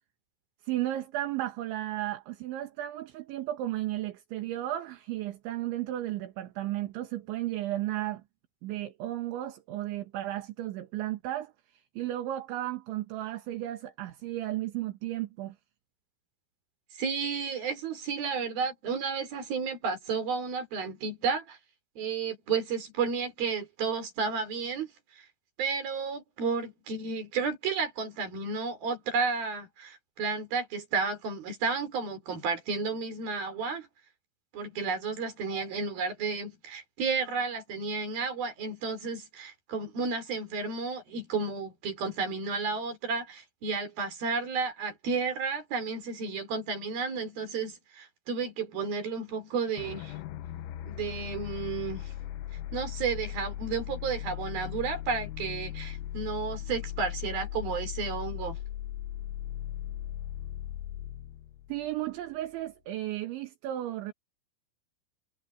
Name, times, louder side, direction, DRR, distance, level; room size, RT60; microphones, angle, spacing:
voice 1, 0.6-8.2 8.6-15.6 61.7-64.1, right 14 dB, 70° right, 3.8 m, -34 dB
voice 2, 17.0-21.6 22.0-24.9 25.6-33.9 34.5-50.1 50.8-52.1 52.7-58.6, right 5 dB, 50° right, 6.1 m, -32 dB
sound 1, 49.8-62.5, left 12 dB, 90° left, 3.8 m, -38 dB
omnidirectional pair, 5.8 m